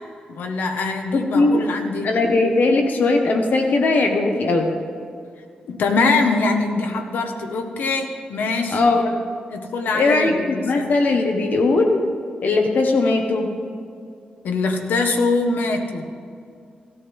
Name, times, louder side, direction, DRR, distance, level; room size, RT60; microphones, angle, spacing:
voice 1, 0.3-2.1 5.7-9.1 9.5-10.9 14.4-16.1, left 3 dB, 85° left, 4 dB, 1.4 m, -23 dB
voice 2, 1.1-1.6 2.0-4.7 8.7-9.1 9.9-12.0 12.4-13.5, left 3 dB, 65° left, 3 dB, 1.5 m, -19 dB
17.5 x 13.5 x 3.6 m, 2.3 s
cardioid pair, 90°, 3 cm